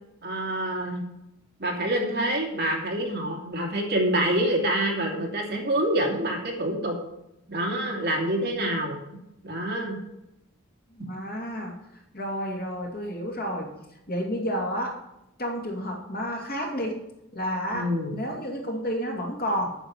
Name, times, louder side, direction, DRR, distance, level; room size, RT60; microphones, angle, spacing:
voice 1, 0.2-1.0 1.6-7.0 7.5-9.0 9.4-10.0 17.7-18.1, right 1 dB, 50° right, 0 dB, 2.7 m, -26 dB
voice 2, 10.9-11.8 12.1-13.7 14.1-15.0 15.4-17.0 17.3-19.7, equal, 45° left, 0 dB, 2.6 m, -30 dB
9.0 x 6.8 x 8.2 m, 0.85 s
head